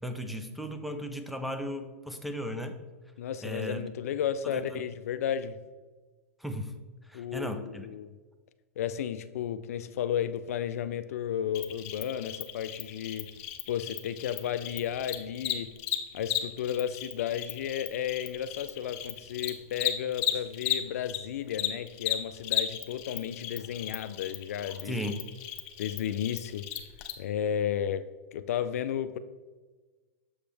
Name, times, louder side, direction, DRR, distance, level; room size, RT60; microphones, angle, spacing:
voice 1, 0.0-2.8 3.4-3.9 4.4-4.8 6.4-6.8 7.1-7.9 24.9-25.3, equal, ahead, 0.6 m, -36 dB
voice 2, 3.2-5.6 7.1-8.1 8.8-13.3 13.7-15.7 16.1-25.1 25.8-26.7 27.2-29.2, left 9 dB, 75° left, 0.4 m, -33 dB
Cricket, 11.5-21.2 21.5-27.1, left 12 dB, 50° left, 0.7 m, -35 dB
7.0 x 5.1 x 3.3 m
hypercardioid pair, 120°, 8 cm